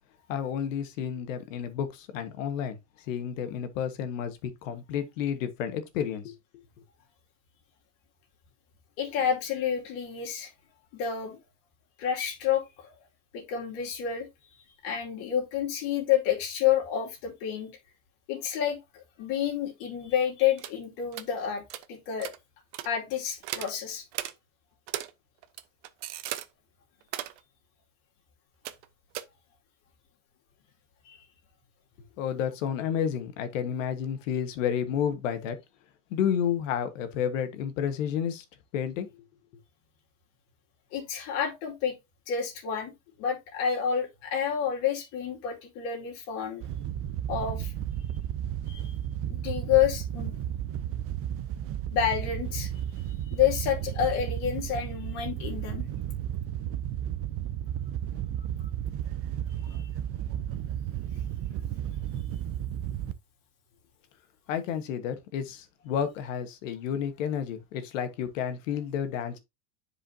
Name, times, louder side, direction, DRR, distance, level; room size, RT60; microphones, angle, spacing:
voice 1, 0.3-2.8 3.1-6.3 32.2-35.6 36.1-38.4 38.7-39.1 64.5-69.4, left 8 dB, 75° left, 1.5 m, -31 dB
voice 2, 9.0-10.5 10.9-11.4 12.0-12.9 13.3-14.3 14.8-17.7 18.3-21.6 21.9-22.3 22.8-24.0 31.1-31.2 40.9-42.0 42.3-42.9 43.2-46.7 47.3-47.7 48.7-48.9 49.3-50.3 51.9-52.7 53.3-55.8 59.7-59.9, left 9 dB, 60° left, 2.7 m, -29 dB
sound 1, 20.6-20.8 21.1-21.3 21.7-21.9 22.2-22.4 22.7-22.9 23.4-23.7 24.1-24.3 24.9-25.1 25.4-26.5 27.0-27.4 28.6-28.9 29.1-29.2, right 14 dB, 65° right, 1.0 m, -36 dB
Wind / Boat Water vehicle, 46.6-63.1, right 11 dB, 35° right, 0.6 m, -33 dB
10.0 x 5.0 x 2.8 m
supercardioid pair, 130°, 38 cm